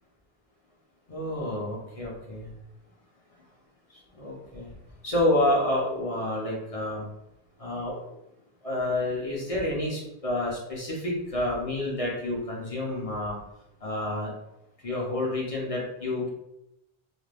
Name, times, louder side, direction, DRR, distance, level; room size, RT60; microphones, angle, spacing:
voice 1, 1.1-2.5 4.2-4.7 5.0-7.1 7.6-8.2 8.6-13.3 13.8-14.3 14.8-16.3, left 1 dB, 40° left, -3 dB, 0.7 m, -29 dB
2.5 x 2.2 x 3.3 m, 0.83 s
omnidirectional pair, 1.0 m